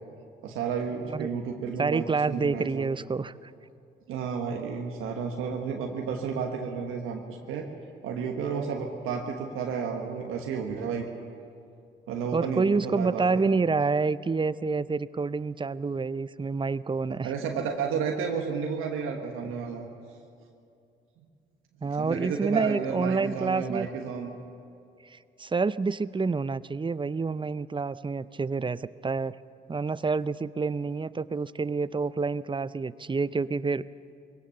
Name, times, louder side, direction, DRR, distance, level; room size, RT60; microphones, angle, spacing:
voice 1, 0.4-2.9 4.1-7.7 8.0-11.1 12.1-13.5 17.2-19.9 21.8-24.3, right 6 dB, 90° right, 1 dB, 1.3 m, -32 dB
voice 2, 1.8-3.5 12.3-17.3 21.8-23.9 25.0-29.4 29.7-33.8, right 4 dB, 25° right, 17 dB, 0.5 m, -28 dB
21.5 x 17.5 x 7.0 m, 2.5 s
supercardioid pair, 55°, 21 cm